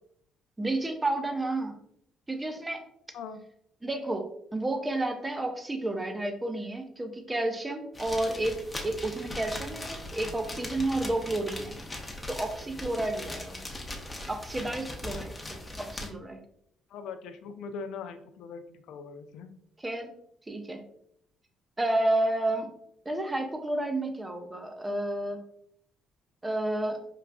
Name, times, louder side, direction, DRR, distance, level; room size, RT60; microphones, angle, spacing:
voice 1, 0.6-1.8 2.3-2.8 3.8-11.8 12.3-13.6 14.3-16.4 19.8-20.1 20.5-20.8 21.8-22.7 23.0-25.4 26.4-27.1, right 2 dB, 20° right, 5 dB, 0.6 m, -31 dB
sound 1, 7.9-16.1, left 1 dB, 15° left, 0.7 m, -39 dB
voice 2, 16.9-19.5, left 5 dB, 75° left, 9 dB, 0.3 m, -41 dB
4.7 x 2.3 x 2.2 m, 0.71 s
supercardioid pair, 60°, 0 cm